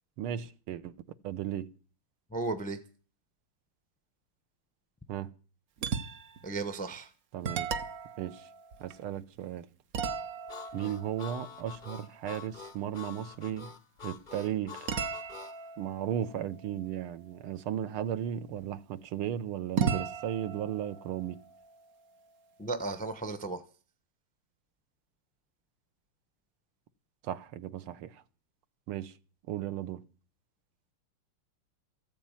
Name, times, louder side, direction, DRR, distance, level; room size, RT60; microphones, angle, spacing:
voice 1, 0.2-0.9 1.2-1.7 5.1-5.3 7.3-7.7 8.2-8.5 8.8-9.7 10.7-13.7 14.0-14.9 15.8-21.4 27.2-28.2 28.9-29.1 29.5-30.0, right 10 dB, 80° right, 1.7 m, -35 dB
voice 2, 2.3-2.8 6.4-7.1 22.6-23.6, right 3 dB, 10° left, 0.5 m, -34 dB
sound 1, 5.8-6.5 6.9-7.0 7.4-9.4 9.9-12.6 14.9-17.5 19.8-22.4, right 6 dB, 55° right, 1.1 m, -37 dB
Harmonica, 10.5-15.6, left 7 dB, 55° left, 0.5 m, -46 dB
14.5 x 8.7 x 8.9 m
omnidirectional pair, 2.4 m